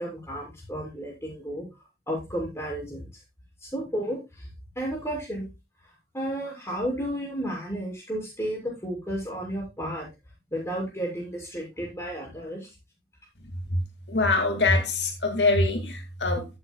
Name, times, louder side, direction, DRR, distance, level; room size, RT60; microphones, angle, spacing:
voice 1, 0.0-1.7 2.1-3.1 3.6-4.5 4.7-5.5 6.1-10.1 10.5-12.7, equal, 15° left, -2 dB, 6.7 m, -32 dB
voice 2, 14.1-16.5, left 2 dB, 80° left, 4 dB, 2.3 m, -24 dB
14.5 x 9.2 x 2.3 m, 0.25 s
head